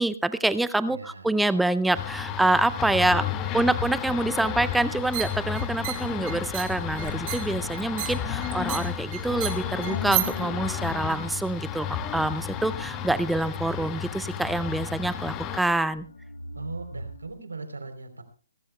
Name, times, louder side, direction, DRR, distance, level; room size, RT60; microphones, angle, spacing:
voice 1, 0.0-3.2 3.5-11.9 12.1-16.0, right 2 dB, 5° right, 15 dB, 0.5 m, -26 dB
voice 2, 0.9-1.4 2.9-3.7 16.5-18.2, right 3 dB, 80° right, 8 dB, 3.4 m, -40 dB
sound 1, 1.9-15.6, left 9 dB, 20° left, 1.2 m, -32 dB
sound 2, 4.9-10.4, right 15 dB, 30° right, 2.4 m, -34 dB
sound 3, 7.2-17.3, left 3 dB, 70° left, 1.6 m, -43 dB
26.0 x 13.5 x 2.2 m, 0.41 s
figure-of-eight pair, 140°, 0 cm